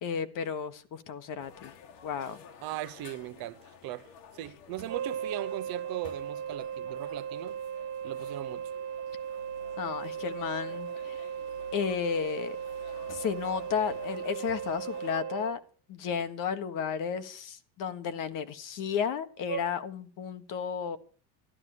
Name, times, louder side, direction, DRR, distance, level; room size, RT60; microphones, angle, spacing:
voice 1, 0.0-1.7 2.0-2.4 9.8-11.3 11.7-12.6 13.1-15.6 15.9-21.0, left 7 dB, 45° left, 1.5 m, -33 dB
sound 1, 1.4-15.2, left 6 dB, 70° left, 2.5 m, -52 dB
voice 2, 2.6-7.5 8.0-8.7, right 15 dB, 50° right, 1.0 m, -39 dB
sound 2, 4.9-15.6 19.5-19.6, right 8 dB, 25° right, 1.9 m, -37 dB
14.0 x 12.0 x 6.7 m
cardioid pair, 150°, 46 cm